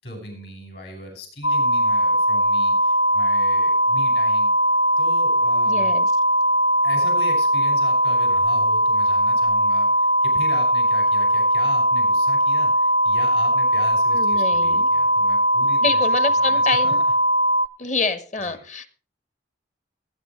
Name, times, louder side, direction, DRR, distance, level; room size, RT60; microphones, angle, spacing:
voice 1, 0.0-4.5 5.0-6.0 6.8-16.0 16.4-16.9 17.8-17.9 18.4-18.6, left 1 dB, 60° left, 2 dB, 6.1 m, -38 dB
sound 1, 1.4-17.7, equal, 85° left, 0.8 m, -19 dB
voice 2, 5.7-6.1 14.1-14.9 15.8-17.0 17.8-18.9, left 4 dB, 40° left, 11 dB, 1.0 m, -27 dB
19.0 x 9.8 x 3.1 m, 0.40 s
head